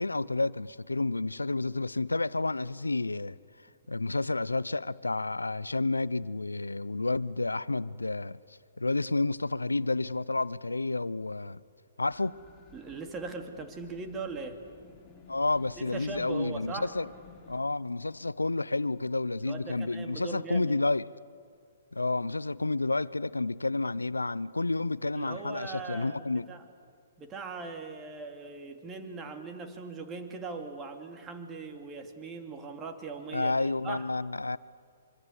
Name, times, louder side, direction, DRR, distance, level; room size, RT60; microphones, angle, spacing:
voice 1, 0.0-3.4 3.9-8.4 8.8-11.6 12.0-12.4 15.3-17.0 17.5-21.0 21.9-26.5 33.3-34.6, left 2 dB, 90° left, 0.6 m, -30 dB
sound 1, 12.1-17.6, left 5 dB, 15° left, 6.7 m, -55 dB
voice 2, 12.7-14.6 15.8-16.9 19.5-20.8 25.1-26.6 27.2-34.0, right 4 dB, 20° right, 2.8 m, -40 dB
25.0 x 25.0 x 8.2 m
figure-of-eight pair, 125°, 0 cm